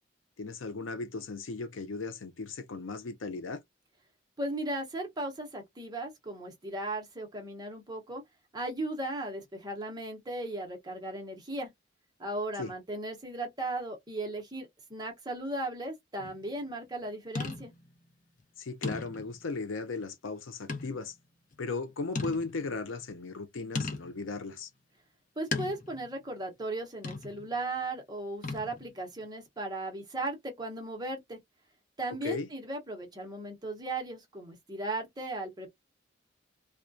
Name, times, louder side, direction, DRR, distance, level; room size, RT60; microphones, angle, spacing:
voice 1, 0.4-3.6 12.6-12.7 18.6-21.1 21.6-24.7 32.2-32.5, left 3 dB, 90° left, 0.6 m, -36 dB
voice 2, 4.4-8.2 8.5-11.7 12.2-17.7 25.4-31.4 32.0-35.7, right 2 dB, 20° right, 0.8 m, -36 dB
sound 1, 16.2-16.5 17.3-17.9 18.4-18.5 18.8-19.4 20.7-21.0 21.5-21.6 22.1-22.8 23.7-24.2 25.5-26.1 27.0-27.5 28.4-28.9, left 3 dB, 40° left, 0.6 m, -36 dB
2.3 x 2.1 x 2.5 m
head